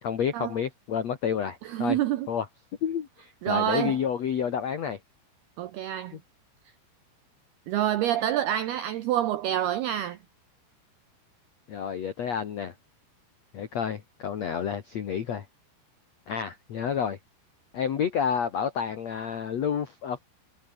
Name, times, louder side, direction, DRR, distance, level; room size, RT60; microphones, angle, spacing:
voice 1, 0.0-2.0 2.3-2.4 2.8-5.0 11.7-12.7 13.5-15.4 16.3-17.2 17.7-20.2, left 7 dB, 70° left, 1.6 m, -29 dB
voice 2, 1.6-2.3 3.4-4.0 5.6-6.2 7.7-10.2, right 12 dB, 80° right, 2.3 m, -27 dB
omnidirectional pair, 5.9 m